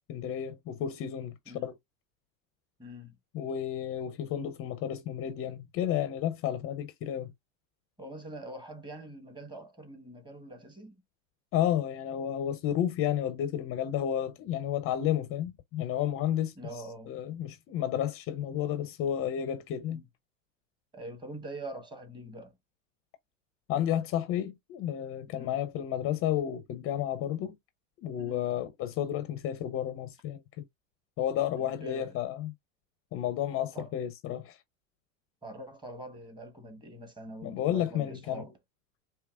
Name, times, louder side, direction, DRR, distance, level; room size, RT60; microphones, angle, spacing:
voice 1, 0.1-1.7 3.3-7.3 11.5-16.5 17.1-20.0 23.7-27.6 28.0-30.7 31.2-32.5 33.1-34.6 37.4-38.4, left 10 dB, 35° left, 0.5 m, -31 dB
voice 2, 2.8-3.2 8.0-11.0 16.6-17.2 19.9-20.0 20.9-22.5 25.3-25.6 28.2-28.5 31.6-32.2 33.7-33.9 35.4-38.5, right 1 dB, 10° right, 1.1 m, -44 dB
4.7 x 2.9 x 2.3 m
hypercardioid pair, 110°, 41 cm